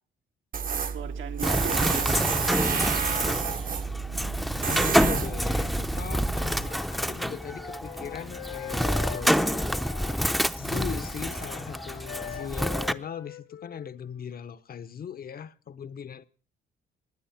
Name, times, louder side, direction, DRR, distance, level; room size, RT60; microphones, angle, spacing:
Tools, 0.5-6.7, right 6 dB, 45° right, 1.0 m, -30 dB
voice 1, 0.7-2.9 3.9-4.5, right 9 dB, 80° right, 1.7 m, -39 dB
Bird, 1.4-12.9, equal, ahead, 0.6 m, -28 dB
voice 2, 4.6-9.8 10.5-16.2, left 8 dB, 50° left, 0.9 m, -39 dB
Wind instrument woodwind instrument, 6.9-14.3, left 10 dB, 75° left, 1.7 m, -42 dB
19.0 x 9.4 x 5.8 m
cardioid pair, 90°, 20 cm